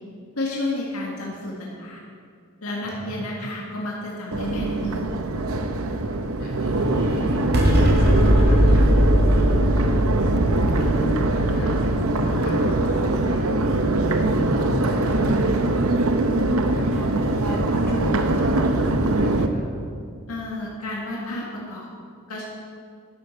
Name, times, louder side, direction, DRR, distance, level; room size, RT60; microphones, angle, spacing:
voice 1, 0.4-2.0 2.6-5.1 20.3-21.9 22.3-22.4, left 1 dB, 85° left, -3 dB, 1.8 m, -31 dB
voice 2, 2.8-3.2 6.4-9.6 10.6-13.4 13.7-13.8 14.1-15.8 16.6-19.6, equal, 45° left, -3 dB, 3.2 m, -33 dB
Crowd, 4.3-19.5, right 2 dB, 70° right, 0.8 m, -22 dB
sound 1, 7.5-14.2, equal, 50° right, 1.9 m, -21 dB
12.5 x 11.0 x 4.6 m, 2.2 s
head